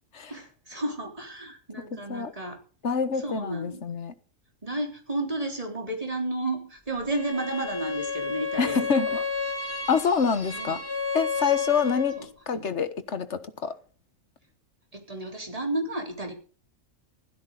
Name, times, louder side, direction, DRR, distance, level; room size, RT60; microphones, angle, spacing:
voice 1, 0.3-2.6 3.2-3.8 4.6-8.9 9.1-9.2 10.5-10.8 12.2-12.3 12.5-12.7 14.9-16.3, right 2 dB, 25° right, 3.9 m, -32 dB
voice 2, 2.8-4.1 8.6-9.2 9.9-10.8 11.1-12.2 12.5-13.7, left 6 dB, 60° left, 1.6 m, -26 dB
Bowed string instrument, 7.1-12.3, left 5 dB, 15° left, 3.4 m, -31 dB
16.0 x 13.0 x 4.0 m
omnidirectional pair, 1.3 m